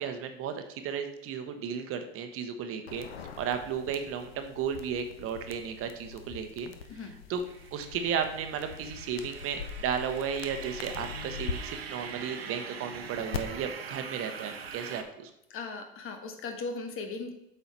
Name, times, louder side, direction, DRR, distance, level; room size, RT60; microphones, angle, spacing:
voice 1, 0.0-3.1 3.4-6.7 7.3-7.4 7.7-15.3, right 7 dB, 50° right, 7 dB, 1.1 m, -34 dB
sound 1, 2.9-11.5 13.3-13.4, left 7 dB, 85° left, 0.8 m, -43 dB
sound 2, 7.5-15.0, right 6 dB, 90° right, 0.8 m, -43 dB
voice 2, 15.5-17.3, left 4 dB, 45° left, 5 dB, 1.5 m, -38 dB
7.9 x 5.5 x 4.4 m, 0.84 s
hypercardioid pair, 75°, 30 cm